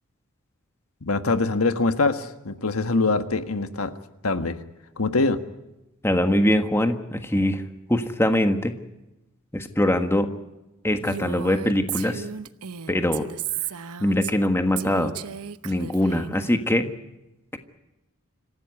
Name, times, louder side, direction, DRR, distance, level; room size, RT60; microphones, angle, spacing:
voice 1, 1.0-3.9 4.2-4.6 5.0-5.4, left 3 dB, 75° left, 9 dB, 1.5 m, -23 dB
voice 2, 6.0-7.6 7.9-8.7 9.5-10.3 10.8-12.3 12.9-13.3 14.0-15.2 15.6-16.9, left 1 dB, 10° left, 7 dB, 1.5 m, -22 dB
Female speech woman speaking, 11.0-14.5 14.8-16.5, right 8 dB, 85° right, 0.9 m, -34 dB
26.5 x 15.5 x 9.6 m, 0.98 s
head